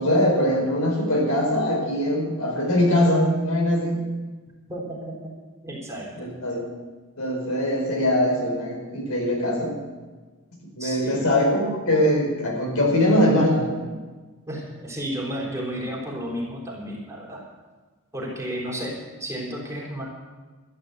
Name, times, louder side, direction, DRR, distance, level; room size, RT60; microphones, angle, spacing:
voice 1, 0.0-4.0 6.1-6.6 7.2-9.8 10.7-13.8, left 1 dB, 75° left, -1 dB, 4.7 m, -22 dB
voice 2, 4.7-5.2 5.6-6.1 10.8-11.2 14.5-17.4 18.1-20.0, equal, 15° right, -3 dB, 3.8 m, -32 dB
13.0 x 10.5 x 8.0 m, 1.3 s
head